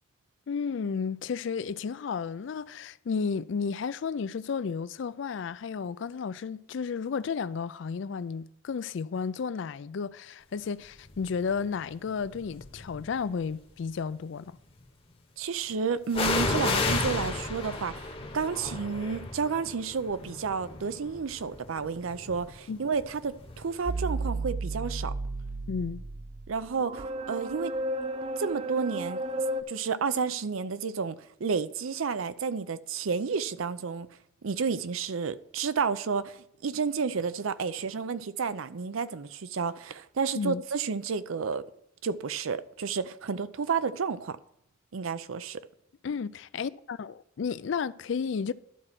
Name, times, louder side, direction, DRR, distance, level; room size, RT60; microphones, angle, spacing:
voice 1, 0.5-14.6 22.7-22.8 25.7-26.0 40.3-40.6 46.0-48.5, left 5 dB, 60° left, 0.4 m, -32 dB
sound 1, 11.2-11.5 12.3-13.2 16.1-23.8 24.0-24.1, left 3 dB, 25° left, 0.9 m, -33 dB
voice 2, 15.4-25.1 26.5-27.7 28.4-29.2 29.7-34.1 34.4-41.6 42.0-44.4 44.9-45.6, right 5 dB, 80° right, 0.5 m, -31 dB
sound 2, 23.8-29.6, right 2 dB, 30° right, 0.4 m, -33 dB
12.0 x 4.4 x 5.9 m
head